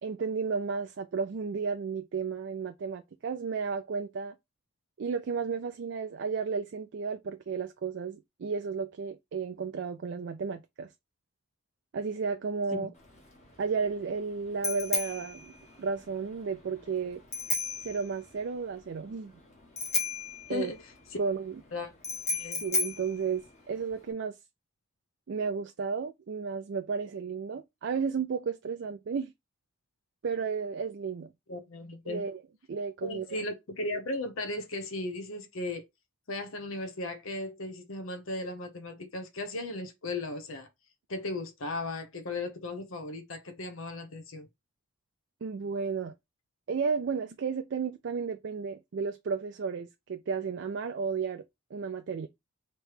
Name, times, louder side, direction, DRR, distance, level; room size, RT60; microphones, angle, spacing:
voice 1, 0.0-4.3 5.0-10.9 11.9-12.9 13.6-15.5 15.8-17.2 17.8-19.3 20.5-20.7 21.2-21.6 22.6-24.4 25.3-29.3 30.2-31.3 32.1-32.4 32.7-33.4 45.4-46.1 46.7-51.4 51.7-52.3, right 5 dB, 55° right, 0.4 m, -33 dB
Bicycle bell, 13.0-24.1, left 4 dB, 35° left, 1.2 m, -35 dB
voice 2, 22.3-22.6 31.5-32.2 33.0-35.8 36.3-40.7 41.1-44.5, left 2 dB, 75° left, 0.8 m, -36 dB
3.3 x 3.0 x 4.7 m
head